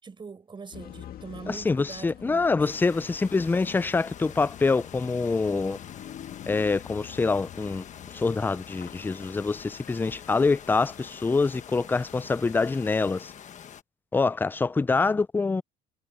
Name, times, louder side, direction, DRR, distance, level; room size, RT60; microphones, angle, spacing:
voice 1, 0.0-2.7, right 5 dB, 30° right, 5.4 m, -43 dB
sound 1, 0.7-13.0, left 11 dB, 60° left, 2.1 m, -47 dB
voice 2, 1.5-5.8 6.5-7.8 8.1-13.3 14.1-15.6, left 4 dB, 10° left, 0.3 m, -25 dB
sound 2, 2.6-13.8, left 8 dB, 45° left, 1.2 m, -46 dB
cardioid pair, 110°, 17 cm